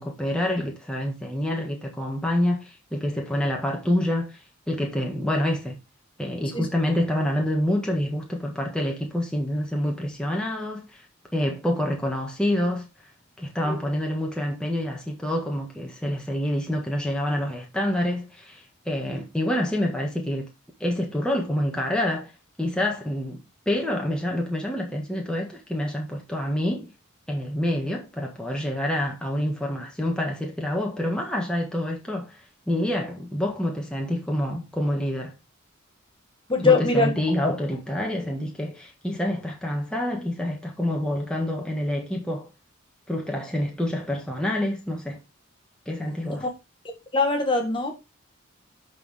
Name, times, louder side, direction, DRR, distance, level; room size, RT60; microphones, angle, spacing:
voice 1, 0.0-4.4 4.7-5.8 6.2-10.8 11.3-12.9 13.4-20.5 20.8-22.3 22.6-26.9 27.3-32.4 32.7-35.3 36.6-42.5 43.1-45.2 45.8-46.5, left 1 dB, 5° left, 1.6 m, -27 dB
voice 2, 36.5-37.1 37.4-37.6 46.4-46.5 47.1-48.0, left 3 dB, 25° left, 1.6 m, -22 dB
12.0 x 4.7 x 3.6 m
head